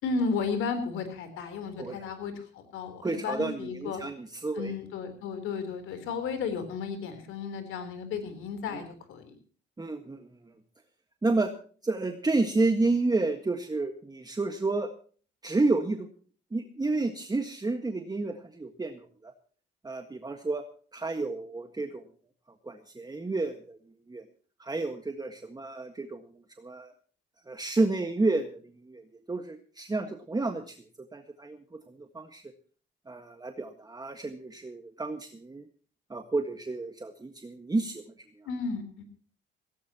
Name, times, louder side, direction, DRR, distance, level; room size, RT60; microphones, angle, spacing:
voice 1, 0.0-4.0 4.5-9.3 38.5-39.0, left 5 dB, 90° left, 9 dB, 3.8 m, -33 dB
voice 2, 1.8-2.1 3.0-4.7 8.7-8.8 9.8-10.3 11.2-11.5 11.8-14.9 15.4-16.1 16.5-19.3 19.8-20.6 20.9-22.0 22.6-23.8 24.1-24.2 24.6-26.3 26.6-26.9 27.5-30.8 31.1-32.4 33.1-35.6 36.1-38.0, right 3 dB, 20° right, 5 dB, 1.7 m, -30 dB
18.0 x 17.5 x 3.0 m, 0.42 s
cardioid pair, 90°, 20 cm